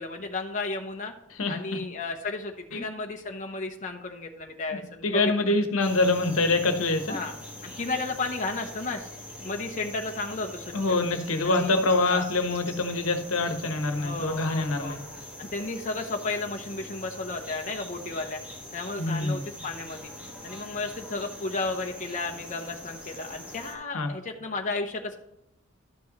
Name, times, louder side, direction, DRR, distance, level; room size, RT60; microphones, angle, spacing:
voice 1, 0.0-1.1 1.5-5.3 7.1-7.3 7.6-9.1 9.4-11.0 11.4-12.3 14.0-15.0 15.4-18.4 18.7-20.1 20.4-25.2, left 3 dB, 35° left, 2 dB, 0.8 m, -33 dB
voice 2, 5.0-7.2 10.7-15.0 19.0-19.4 23.9-24.1, left 2 dB, 80° left, 6 dB, 1.1 m, -25 dB
sound 1, 5.8-23.7, left 1 dB, 5° right, 1.7 m, -43 dB
12.5 x 6.1 x 3.1 m, 0.88 s
head